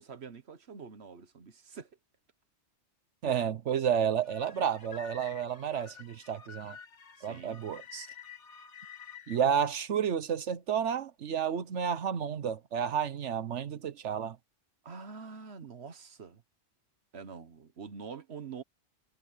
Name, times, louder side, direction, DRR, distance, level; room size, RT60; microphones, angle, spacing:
voice 1, 0.0-1.9 7.2-7.6 14.8-16.4 17.1-18.6, right 5 dB, 65° right, 1.4 m, -45 dB
voice 2, 3.2-6.8 7.2-8.1 9.3-14.4, right 8 dB, 80° right, 1.2 m, -31 dB
sound 1, 4.2-9.4, left 7 dB, 90° left, 1.6 m, -50 dB
omnidirectional pair, 1.2 m